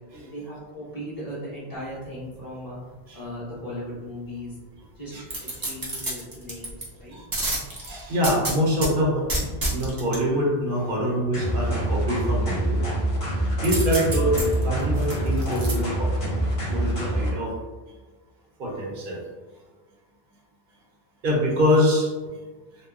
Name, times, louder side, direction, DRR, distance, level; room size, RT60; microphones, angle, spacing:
voice 1, 0.2-2.8 3.1-4.6 5.0-5.1 5.4-7.2, equal, 20° left, -9 dB, 1.0 m, -37 dB
sound 1, 5.3-6.8 7.3-8.9 9.3-10.2 13.6-15.7 16.2-16.3, right 1 dB, 30° right, 0.4 m, -29 dB
voice 2, 7.8-12.8 13.6-14.4 14.6-16.1 16.7-17.6 18.6-19.2 21.2-22.1, equal, 60° right, -3 dB, 0.8 m, -24 dB
sound 2, 11.3-17.3, right 1 dB, 40° left, 0.6 m, -25 dB
2.9 x 2.1 x 2.3 m, 1.3 s
omnidirectional pair, 1.1 m